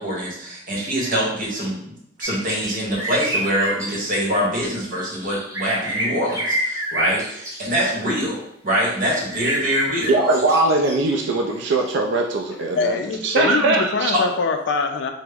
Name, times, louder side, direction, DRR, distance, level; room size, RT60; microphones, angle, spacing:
voice 1, 0.0-1.9 2.2-10.1 14.1-14.2, equal, 45° right, -4 dB, 1.0 m, -24 dB
sound 1, 2.2-2.7 3.0-4.1 5.0-7.9 9.3-11.9, right 1 dB, 15° right, 0.6 m, -28 dB
voice 2, 10.1-12.9 13.2-14.1, right 2 dB, 60° right, 1 dB, 0.3 m, -20 dB
voice 3, 12.7-15.1, left 4 dB, 60° left, 6 dB, 0.3 m, -24 dB
3.4 x 2.0 x 3.3 m, 0.73 s
head